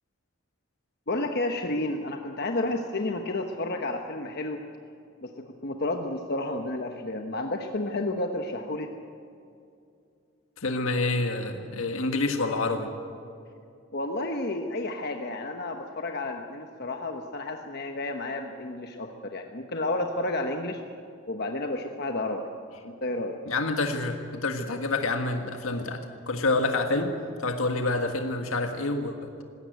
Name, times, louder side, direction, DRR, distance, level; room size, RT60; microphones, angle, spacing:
voice 1, 1.1-4.6 5.2-8.9 13.9-20.8 21.3-22.5 22.8-23.4, left 2 dB, 50° left, 4 dB, 1.1 m, -31 dB
voice 2, 10.6-12.9 23.5-27.1 27.4-29.3, left 2 dB, 85° left, 5 dB, 1.7 m, -27 dB
20.0 x 17.0 x 9.3 m, 2.5 s
head